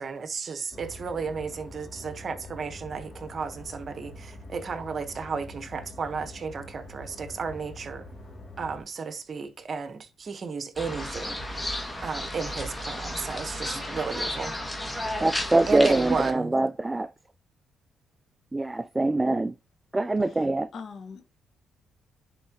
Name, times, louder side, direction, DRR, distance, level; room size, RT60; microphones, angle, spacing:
voice 1, 0.0-8.1 8.6-11.6 12.0-14.6 15.7-16.5, right 5 dB, 45° right, 1.1 m, -33 dB
sound 1, 0.7-8.8, left 1 dB, 35° left, 2.6 m, -44 dB
sound 2, 10.8-16.3, left 1 dB, 10° left, 2.0 m, -33 dB
voice 2, 15.2-17.1 18.5-19.5 19.9-20.7, right 2 dB, 15° right, 0.3 m, -24 dB
voice 3, 20.7-21.3, left 5 dB, 60° left, 1.5 m, -42 dB
10.5 x 4.6 x 2.9 m
cardioid pair, 90°, 0 cm